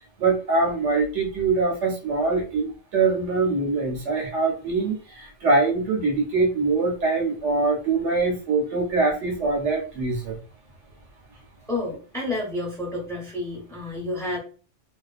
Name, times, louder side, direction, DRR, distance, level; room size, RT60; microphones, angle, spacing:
voice 1, 0.2-10.4, right 3 dB, 70° right, 1 dB, 1.0 m, -23 dB
voice 2, 11.7-14.4, left 2 dB, 5° left, -4 dB, 0.9 m, -30 dB
2.4 x 2.2 x 2.4 m, 0.37 s
omnidirectional pair, 1.3 m